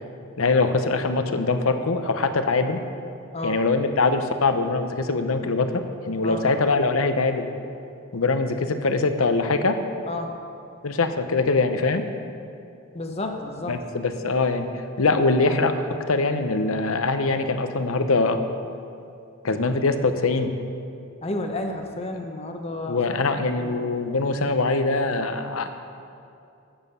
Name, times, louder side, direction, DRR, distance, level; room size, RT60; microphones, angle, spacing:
voice 1, 0.4-2.8 3.4-7.5 8.1-9.8 10.8-12.1 13.7-14.7 15.0-15.8 16.1-18.4 19.4-20.5 22.9-25.7, left 3 dB, 85° left, 8 dB, 0.8 m, -23 dB
voice 2, 12.9-13.8 21.2-23.0 23.3-23.8, left 2 dB, 30° left, 4 dB, 0.7 m, -31 dB
12.5 x 7.3 x 5.5 m, 2.6 s
head